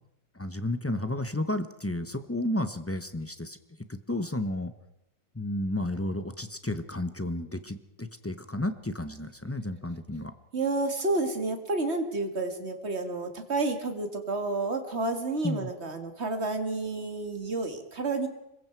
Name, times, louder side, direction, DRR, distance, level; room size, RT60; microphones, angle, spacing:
voice 1, 0.3-3.6 3.9-4.7 5.3-10.3 15.4-15.7, left 1 dB, 20° left, 9 dB, 0.4 m, -32 dB
voice 2, 10.5-18.3, right 3 dB, 35° right, 6 dB, 2.2 m, -30 dB
25.5 x 22.0 x 4.7 m, 0.87 s
omnidirectional pair, 2.0 m